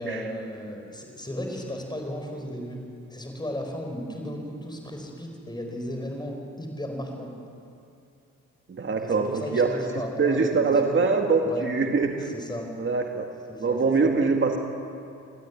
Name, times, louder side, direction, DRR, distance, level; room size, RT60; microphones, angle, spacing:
voice 1, 0.0-2.8 3.1-7.3 9.0-10.9 11.4-11.7 12.2-12.7 13.5-14.1, equal, 15° left, 2 dB, 4.9 m, -35 dB
voice 2, 8.7-9.8 10.2-12.3 12.8-13.2 13.6-14.6, right 4 dB, 40° right, 3 dB, 1.9 m, -23 dB
22.5 x 13.0 x 9.5 m, 2.6 s
cardioid pair, 75°, 32 cm